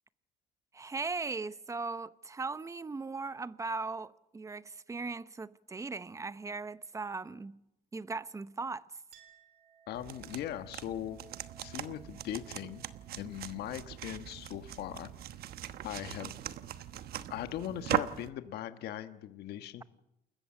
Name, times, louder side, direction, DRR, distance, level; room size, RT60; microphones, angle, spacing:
voice 1, 0.7-7.6 7.9-8.9, right 4 dB, 20° right, 0.8 m, -38 dB
Chink clink, 9.1-16.2, right 7 dB, 85° right, 3.5 m, -62 dB
voice 2, 9.9-11.2 11.6-12.8 13.2-15.1 15.8-16.3 17.3-19.8, left 12 dB, 75° left, 1.4 m, -39 dB
sound 1, 10.0-18.3, right 11 dB, 65° right, 1.2 m, -40 dB
29.0 x 14.5 x 7.4 m
cardioid pair, 110°, 17 cm